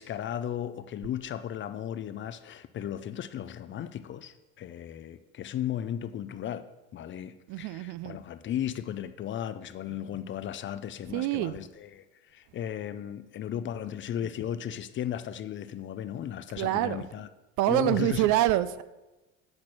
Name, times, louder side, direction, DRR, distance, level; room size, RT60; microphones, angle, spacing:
voice 1, 0.0-6.7 6.9-17.3 17.7-18.3, left 10 dB, 35° left, 12 dB, 0.4 m, -35 dB
voice 2, 7.5-8.2 11.1-11.5 16.6-17.0 17.6-18.8, right 14 dB, 60° right, 16 dB, 0.5 m, -26 dB
8.6 x 4.4 x 6.2 m, 1.1 s
supercardioid pair, 90°, 34 cm